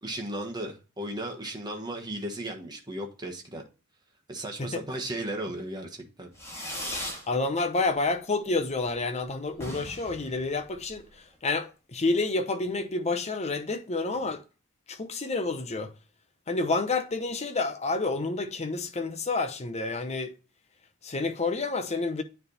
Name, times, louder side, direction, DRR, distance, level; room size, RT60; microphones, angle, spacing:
voice 1, 0.0-3.6 4.3-6.3, right 1 dB, 20° right, 1.3 m, -35 dB
Fireworks, 6.3-7.3 7.6-8.2 8.5-8.6 8.8-8.9 9.2-9.3 9.5-11.2, left 1 dB, 10° left, 2.7 m, -38 dB
voice 2, 7.3-14.4 14.9-15.9 16.5-20.3 21.0-22.2, left 3 dB, 30° left, 0.8 m, -29 dB
9.6 x 3.4 x 4.0 m
head